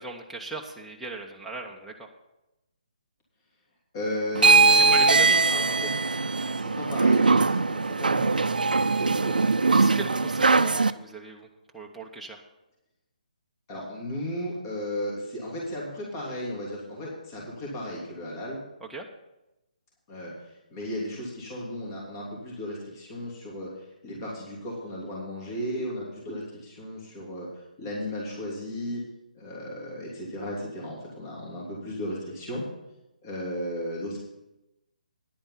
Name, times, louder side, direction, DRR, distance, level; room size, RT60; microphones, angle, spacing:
voice 1, 0.0-2.1 4.6-5.5 9.7-11.5 11.7-12.4 18.9-19.1, right 3 dB, ahead, -3 dB, 0.8 m, -37 dB
voice 2, 3.9-5.0 5.5-5.9 6.5-9.5 13.7-18.6 20.1-29.0 29.3-32.6 33.2-34.2, left 1 dB, 35° left, -4 dB, 3.1 m, -35 dB
sound 1, 4.3-10.9, right 4 dB, 80° right, 0.5 m, -21 dB
10.5 x 8.7 x 5.7 m, 0.94 s
figure-of-eight pair, 145°, 5 cm